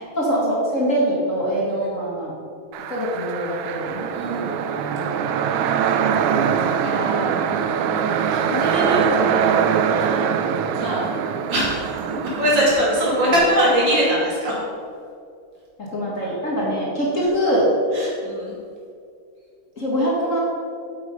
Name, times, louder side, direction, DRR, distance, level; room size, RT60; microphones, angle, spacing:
voice 1, 0.2-2.3 2.9-5.5 6.9-7.7 9.0-9.3 15.8-17.6 19.8-20.4, equal, 40° left, -5 dB, 2.0 m, -24 dB
sound 1, 2.7-14.1, right 7 dB, 75° right, 1.3 m, -23 dB
voice 2, 4.1-4.6 6.8-7.3 7.8-10.3 10.7-11.1 11.5-14.5 16.2-16.3 17.9-18.6, equal, 55° right, -6 dB, 3.2 m, -23 dB
8.5 x 7.2 x 5.4 m, 2.4 s
omnidirectional pair, 2.4 m